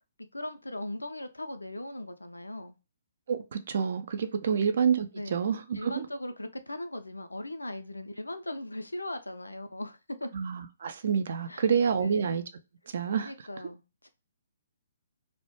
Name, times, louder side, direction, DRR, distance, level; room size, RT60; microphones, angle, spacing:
voice 1, 0.2-2.7 4.5-4.6 5.1-5.4 5.7-10.3 11.5-11.6 12.0-12.3 13.2-14.1, left 1 dB, 80° left, 0.3 m, -39 dB
voice 2, 3.3-6.1 10.3-12.4 12.9-13.3, right 7 dB, 50° right, 0.3 m, -28 dB
2.1 x 2.0 x 2.9 m
figure-of-eight pair, 130°, 0 cm